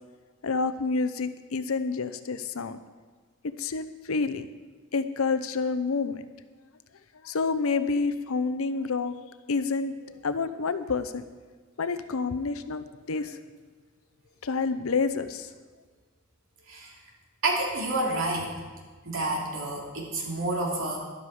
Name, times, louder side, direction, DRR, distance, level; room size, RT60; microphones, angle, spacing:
voice 1, 0.4-2.8 3.6-4.5 4.9-6.2 7.2-11.2 11.8-13.4 14.4-15.5, left 4 dB, 75° left, 11 dB, 0.7 m, -28 dB
voice 2, 17.4-18.6 19.0-21.0, right 2 dB, 65° right, -1 dB, 2.9 m, -29 dB
12.5 x 11.5 x 4.9 m, 1.4 s
head